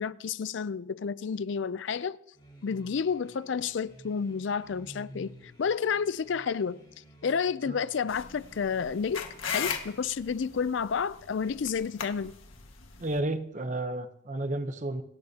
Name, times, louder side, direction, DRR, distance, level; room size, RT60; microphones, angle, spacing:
voice 1, 0.0-2.2 2.6-6.8 7.2-9.2 9.5-12.3, left 6 dB, 65° left, 0.4 m, -30 dB
sound 1, 2.3-10.2, equal, 25° left, 4.8 m, -53 dB
sound 2, 8.1-13.2, left 7 dB, 80° left, 1.7 m, -38 dB
voice 2, 13.0-15.0, right 1 dB, 35° right, 0.8 m, -32 dB
28.5 x 13.0 x 2.8 m
head